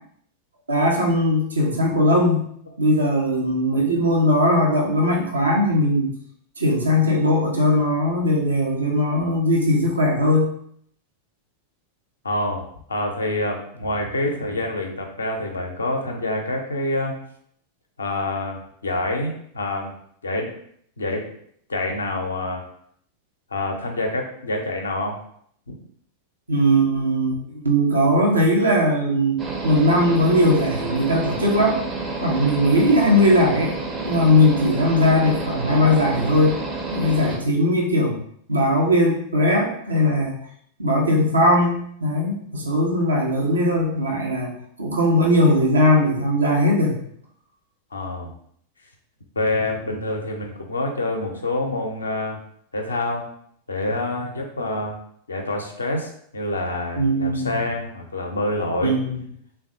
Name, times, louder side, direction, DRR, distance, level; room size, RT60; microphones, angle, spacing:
voice 1, 0.7-2.4 2.8-6.1 6.6-10.5 26.5-31.8 32.2-33.8 34.0-36.6 36.9-38.2 38.5-40.3 40.8-44.5 44.8-47.0 57.0-57.6 58.8-59.2, left 1 dB, 75° right, 0 dB, 0.6 m, -19 dB
voice 2, 12.2-12.6 12.9-17.2 18.0-20.0 20.2-20.5 21.0-21.3 21.7-22.6 23.5-25.2 37.3-37.4 47.9-48.3 49.4-52.4 52.7-53.2 53.7-55.0 55.3-59.3, left 2 dB, 75° left, 2 dB, 0.5 m, -26 dB
sound 1, 29.4-37.4, right 3 dB, 20° right, 0.5 m, -30 dB
3.3 x 2.2 x 2.5 m, 0.66 s
figure-of-eight pair, 90°, 0 cm